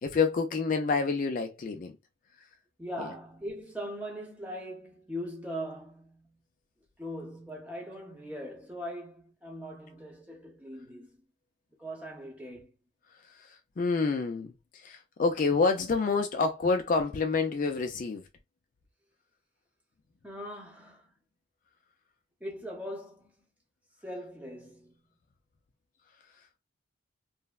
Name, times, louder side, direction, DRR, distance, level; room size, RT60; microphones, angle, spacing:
voice 1, 0.0-2.0 3.0-3.1 13.2-18.2, left 4 dB, 40° left, 0.3 m, -28 dB
voice 2, 2.8-6.4 7.0-11.2 11.8-12.7 20.2-21.1 22.4-23.3 24.0-24.9, equal, 5° right, 0.7 m, -40 dB
3.2 x 2.0 x 2.3 m
head